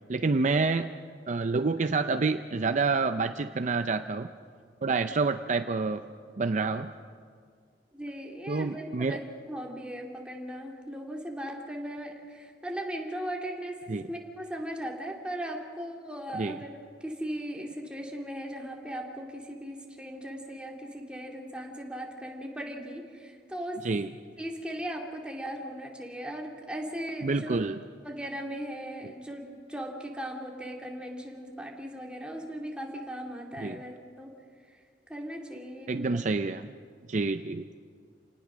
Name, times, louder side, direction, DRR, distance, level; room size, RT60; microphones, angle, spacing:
voice 1, 0.1-0.9 1.3-4.3 4.8-6.0 6.4-6.9 8.5-9.2 13.9-14.0 16.3-16.6 23.8-24.1 27.2-27.8 33.6-33.8 35.9-36.7 37.1-37.7, right 4 dB, 45° right, 9 dB, 0.5 m, -28 dB
voice 2, 7.9-16.7 17.0-23.9 24.4-27.6 28.0-34.3 35.1-36.1, equal, 5° right, 0 dB, 2.5 m, -38 dB
28.5 x 18.5 x 6.3 m, 2.1 s
head